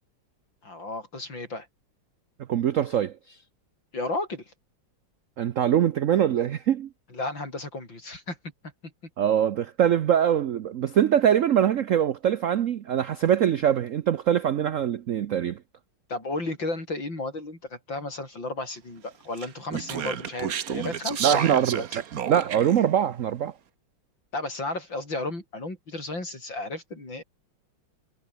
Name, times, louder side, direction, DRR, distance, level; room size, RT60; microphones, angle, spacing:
voice 1, 0.6-1.7 3.9-4.5 7.1-8.4 16.1-22.0 24.3-27.2, left 2 dB, 60° left, 8.3 m, -33 dB
voice 2, 2.5-3.4 5.4-6.9 9.2-15.6 21.2-21.9 22.3-23.5, right 9 dB, 85° right, 0.7 m, -23 dB
Speech, 19.4-22.8, right 9 dB, 50° right, 1.4 m, -31 dB
omnidirectional pair, 2.3 m